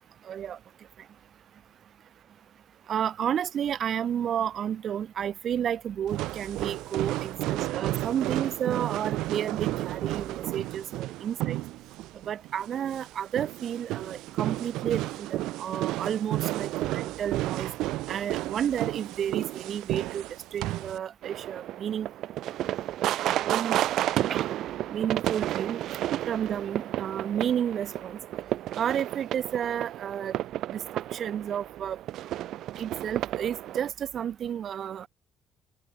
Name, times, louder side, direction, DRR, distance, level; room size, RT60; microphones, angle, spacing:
voice 1, 0.2-0.6 2.9-11.6 12.3-17.7 18.1-20.3 20.5-22.1 23.4-23.8 24.3-24.4 24.9-25.8 26.3-28.2 28.7-30.4 30.7-32.0 32.7-35.1, right 9 dB, 50° right, 0.4 m, -31 dB
sound 1, 6.1-21.0, right 17 dB, 90° right, 0.8 m, -32 dB
sound 2, 21.2-33.9, right 13 dB, 70° right, 1.3 m, -32 dB
cardioid pair, 115°, 0 cm